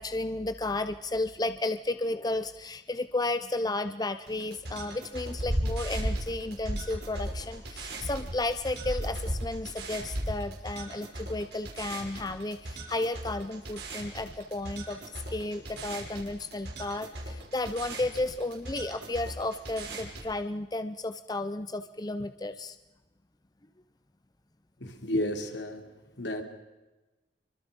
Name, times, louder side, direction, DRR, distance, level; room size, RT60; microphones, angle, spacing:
voice 1, 0.0-22.8, left 2 dB, 20° left, 10 dB, 0.7 m, -33 dB
sound 1, 4.3-20.3, right 2 dB, 60° right, 5.8 m, -42 dB
sound 2, 5.4-10.5, equal, 80° right, 3.8 m, -33 dB
voice 2, 24.8-25.8 26.2-26.4, left 1 dB, 75° left, 5 dB, 3.3 m, -31 dB
27.5 x 24.5 x 5.3 m, 1.1 s
head